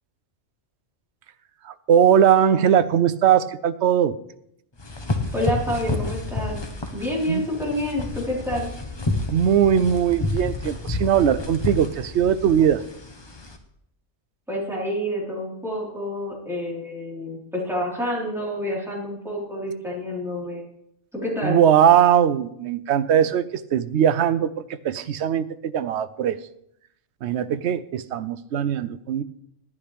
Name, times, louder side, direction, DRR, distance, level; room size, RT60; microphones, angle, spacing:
voice 1, 1.6-4.2 7.3-7.4 9.3-12.8 21.4-26.4 27.2-29.2, right 9 dB, 70° right, 14 dB, 0.8 m, -20 dB
sound 1, 4.8-13.6, left 2 dB, 25° left, 0.9 m, -30 dB
voice 2, 5.3-6.6 6.9-8.7 14.5-20.6 21.1-21.6, equal, ahead, -6 dB, 4.0 m, -28 dB
11.5 x 11.5 x 3.4 m, 0.75 s
omnidirectional pair, 1.3 m